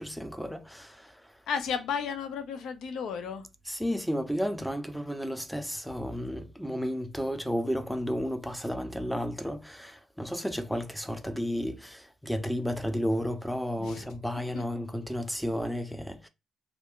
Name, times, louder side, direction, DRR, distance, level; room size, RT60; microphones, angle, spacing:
voice 1, 0.0-1.3 3.7-16.3, equal, ahead, 0.5 m, -32 dB
voice 2, 1.5-3.5 13.8-14.0 14.5-14.7, left 6 dB, 80° left, 0.5 m, -33 dB
2.4 x 2.1 x 3.6 m
cardioid pair, 90°, 0 cm